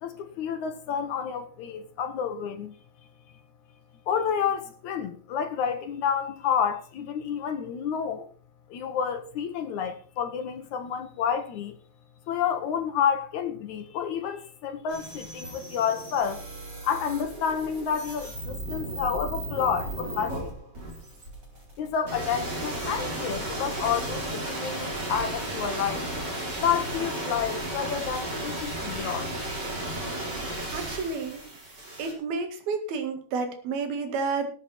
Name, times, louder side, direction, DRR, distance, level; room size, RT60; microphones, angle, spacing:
voice 1, 0.0-2.7 4.1-8.3 8.7-11.8 12.3-16.4 16.8-20.5 21.8-26.1 26.6-29.3, left 7 dB, 65° left, 2.1 m, -29 dB
sound 1, 14.9-32.1, right 1 dB, 30° right, 4.5 m, -34 dB
voice 2, 30.7-31.4 32.0-34.5, right 4 dB, 85° right, 3.9 m, -30 dB
19.0 x 8.4 x 4.3 m
omnidirectional pair, 4.2 m